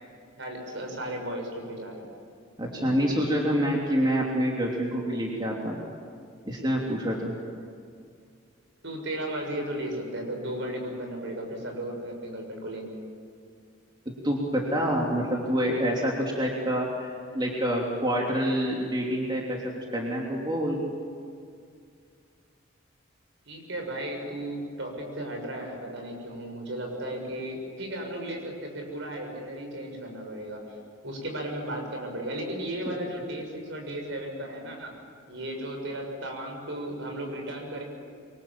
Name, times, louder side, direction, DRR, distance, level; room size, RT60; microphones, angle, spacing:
voice 1, 0.4-2.0 8.8-13.0 23.5-30.6 31.0-34.9 35.3-37.8, right 1 dB, 65° right, 2 dB, 6.7 m, -35 dB
voice 2, 2.6-5.8 6.5-7.3 14.2-19.6 19.9-20.8 32.8-32.9, equal, 20° right, -2 dB, 3.1 m, -27 dB
27.5 x 24.0 x 7.6 m, 2.3 s
head